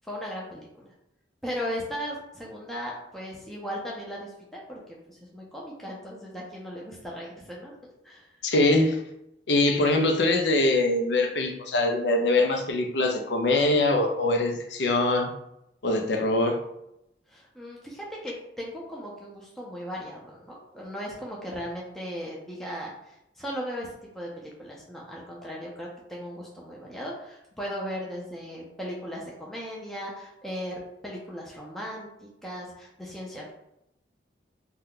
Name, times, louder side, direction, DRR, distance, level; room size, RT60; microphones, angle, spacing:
voice 1, 0.0-0.9 1.4-7.7 8.0-8.3 17.3-23.9 24.1-33.6, equal, ahead, -4 dB, 0.4 m, -37 dB
voice 2, 8.4-9.0 9.5-15.3 15.8-16.6, left 2 dB, 80° left, 3 dB, 0.5 m, -23 dB
2.7 x 2.2 x 3.6 m, 0.83 s
head